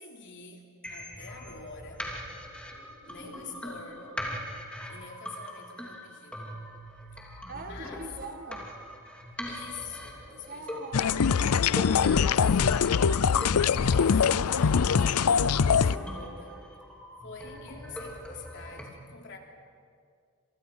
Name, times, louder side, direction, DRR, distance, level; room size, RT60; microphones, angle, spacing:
voice 1, 0.0-2.1 3.0-4.2 4.9-6.5 7.5-8.1 9.5-10.9 11.8-16.7 17.2-19.4, left 4 dB, 55° left, 1 dB, 3.4 m, -46 dB
sound 1, 0.8-18.8, equal, 5° left, 3.0 m, -42 dB
voice 2, 3.2-3.6 7.5-8.7 10.5-11.7 17.4-17.8, right 3 dB, 40° right, 6 dB, 1.9 m, -44 dB
sound 2, 10.9-16.0, left 6 dB, 85° left, 0.5 m, -23 dB
29.5 x 27.0 x 5.7 m, 2.2 s
head